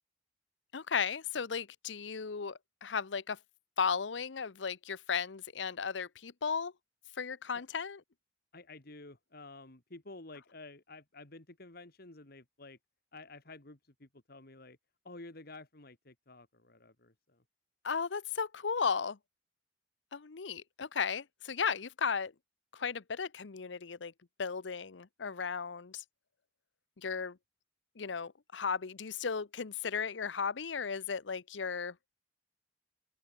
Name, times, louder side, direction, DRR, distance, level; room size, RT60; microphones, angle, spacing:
voice 1, 0.7-3.4 3.8-6.7 7.2-8.0 17.8-19.2 20.1-22.3 22.7-24.1 24.4-26.0 27.0-27.4 28.0-31.9, left 6 dB, 80° left, 0.8 m, -35 dB
voice 2, 8.5-12.8 13.1-14.8 15.0-17.4, left 2 dB, 55° left, 2.5 m, -51 dB
open air
head